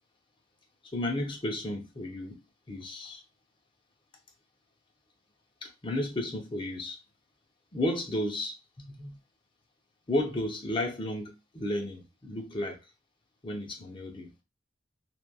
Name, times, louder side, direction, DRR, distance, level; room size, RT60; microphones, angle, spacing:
voice 1, 0.9-2.4 2.7-3.2 5.6-7.0 7.7-9.2 10.1-12.8 13.4-14.3, left 1 dB, 25° left, 0.5 m, -33 dB
2.9 x 2.3 x 2.2 m
head